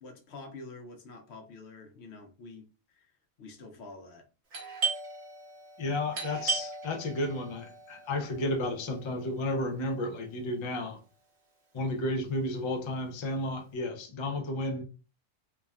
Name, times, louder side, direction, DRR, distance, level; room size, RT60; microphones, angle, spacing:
voice 1, 0.0-2.6 3.4-4.3, left 3 dB, 70° left, 0.9 m, -47 dB
Doorbell, 4.5-10.0, right 4 dB, 75° right, 1.1 m, -37 dB
voice 2, 5.8-11.0 11.7-14.8, left 1 dB, 55° left, 0.3 m, -32 dB
3.3 x 2.1 x 2.3 m
omnidirectional pair, 1.2 m